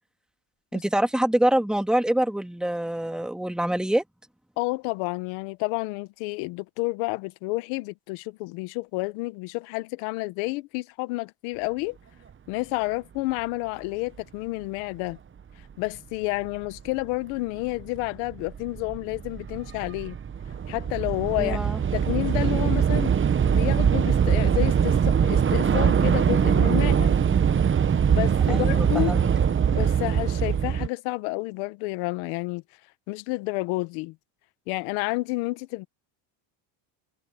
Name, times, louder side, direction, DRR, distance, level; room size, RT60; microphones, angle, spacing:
voice 1, 0.7-4.0 21.4-21.8 28.5-29.3, right 1 dB, ahead, 2.1 m, -25 dB
voice 2, 4.6-12.0 12.5-15.2 15.8-20.2 20.7-21.6 21.9-23.1 23.5-27.1 28.1-29.2 29.7-32.6 33.1-34.1 34.7-35.9, left 23 dB, 85° left, 1.4 m, -30 dB
Train / Subway metro underground, 16.9-17.0 17.8-18.1 18.3-30.9, right 7 dB, 25° right, 1.0 m, -22 dB
supercardioid pair, 105°, 50 cm